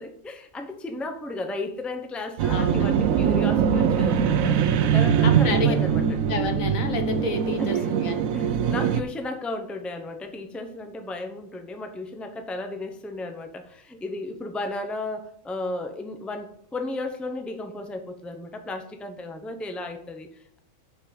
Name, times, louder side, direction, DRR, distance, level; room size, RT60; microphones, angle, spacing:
voice 1, 0.0-6.2 7.6-8.0 8.3-20.6, left 2 dB, ahead, 6 dB, 0.7 m, -34 dB
sound 1, 2.4-9.0, right 8 dB, 85° right, 1.1 m, -22 dB
voice 2, 2.5-3.1 5.2-5.7 6.3-8.3, left 4 dB, 80° left, 6 dB, 1.6 m, -30 dB
7.3 x 5.5 x 7.2 m, 0.72 s
omnidirectional pair, 1.4 m